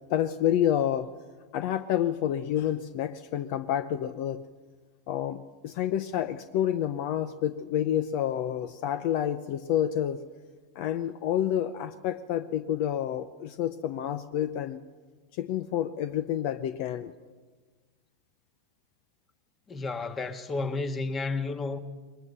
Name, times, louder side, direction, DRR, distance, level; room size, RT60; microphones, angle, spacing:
voice 1, 0.1-1.1 1.5-4.4 5.1-10.2 10.7-14.8 15.3-17.3, left 10 dB, 60° left, 0.7 m, -29 dB
voice 2, 19.7-21.8, left 3 dB, 25° left, 1.6 m, -31 dB
21.0 x 20.0 x 6.8 m
hypercardioid pair, 110°, 0 cm